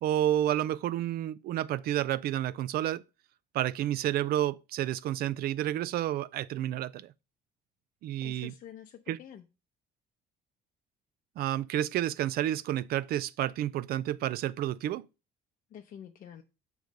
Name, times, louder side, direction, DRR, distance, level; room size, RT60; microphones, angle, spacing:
voice 1, 0.0-3.0 3.5-7.1 8.0-8.5 9.1-9.2 11.4-15.0, right 12 dB, 65° right, 0.4 m, -30 dB
voice 2, 8.2-9.5 15.7-16.4, left 9 dB, 55° left, 0.6 m, -47 dB
6.3 x 3.2 x 5.1 m
cardioid pair, 110°, 17 cm